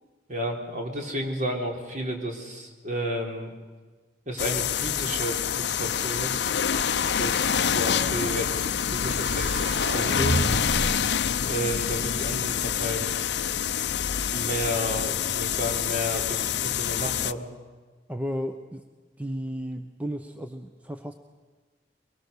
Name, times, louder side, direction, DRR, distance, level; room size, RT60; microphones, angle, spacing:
voice 1, 0.3-3.5 4.2-6.5 7.2-10.4 11.4-13.1 14.3-17.5, equal, 45° right, 2 dB, 3.5 m, -32 dB
sound 1, 4.4-17.3, left 8 dB, 70° left, 0.6 m, -27 dB
sound 2, 9.2-11.2, right 2 dB, 75° right, 1.6 m, -30 dB
voice 2, 18.1-18.8 19.2-21.1, equal, 10° right, 6 dB, 0.8 m, -33 dB
23.0 x 23.0 x 6.7 m, 1.4 s
head